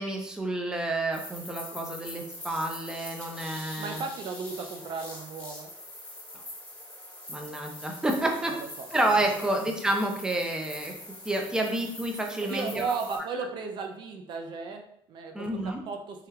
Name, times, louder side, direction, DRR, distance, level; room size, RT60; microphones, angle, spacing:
voice 1, 0.0-4.0 7.3-8.5 8.9-10.9 11.2-12.9 13.1-13.2 15.3-15.8, right 1 dB, 10° right, 2 dB, 0.5 m, -29 dB
sound 1, 1.1-13.2, left 1 dB, 15° left, 1.0 m, -44 dB
voice 2, 3.8-5.7 8.4-8.9 9.5-9.6 12.4-16.3, right 5 dB, 55° right, 5 dB, 0.4 m, -35 dB
3.3 x 3.2 x 2.3 m, 0.70 s
cardioid pair, 105°, 9 cm